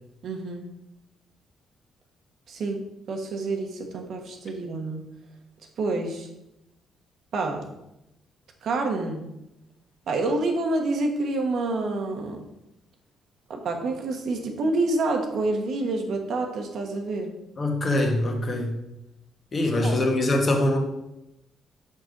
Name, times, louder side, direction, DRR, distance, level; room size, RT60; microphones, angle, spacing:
voice 1, 0.2-0.6 2.5-2.8 3.1-5.0 5.8-6.3 7.3-7.6 8.6-9.3 10.1-12.5 13.5-17.3 19.8-20.0, right 2 dB, 65° right, 3 dB, 1.2 m, -27 dB
voice 2, 17.6-18.8 19.5-20.8, left 1 dB, 40° left, 2 dB, 1.5 m, -23 dB
5.6 x 5.2 x 5.3 m, 0.88 s
cardioid pair, 90°, 0 cm